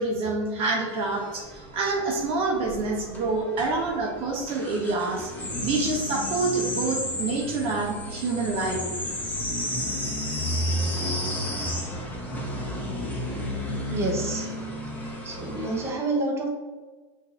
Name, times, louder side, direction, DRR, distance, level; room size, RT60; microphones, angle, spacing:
voice 1, 0.0-5.3 5.6-8.8, right 3 dB, 45° right, -1 dB, 1.0 m, -27 dB
sound 1, 0.9-15.9, left 1 dB, 10° left, 1.0 m, -32 dB
voice 2, 13.9-14.5 15.2-16.5, right 2 dB, 20° right, -1 dB, 1.1 m, -28 dB
5.7 x 2.8 x 3.3 m, 1.3 s
hypercardioid pair, 105°, 14 cm